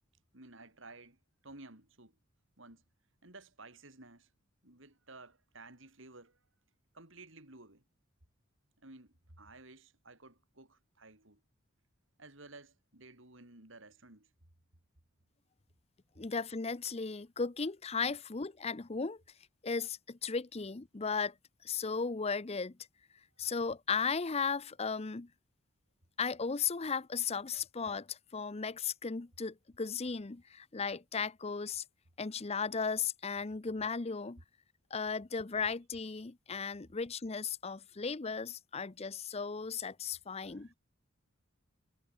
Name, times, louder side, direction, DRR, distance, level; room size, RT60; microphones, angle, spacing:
voice 1, 0.3-2.2 2.6-2.8 3.2-4.3 4.6-6.4 6.9-7.8 8.8-11.4 12.2-14.3 40.4-40.8, right 2 dB, 65° right, 4.6 m, -54 dB
voice 2, 16.2-19.2 19.6-21.3 21.6-22.8 23.4-25.3 26.2-31.8 32.2-34.4 34.9-40.7, left 5 dB, 30° left, 0.6 m, -36 dB
head